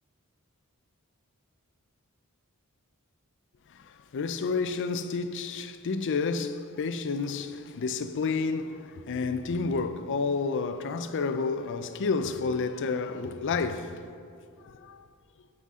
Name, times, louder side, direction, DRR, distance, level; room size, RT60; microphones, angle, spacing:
voice 1, 3.7-14.0 14.6-15.0, left 4 dB, 55° left, 0.4 m, -30 dB
14.5 x 5.6 x 3.6 m
head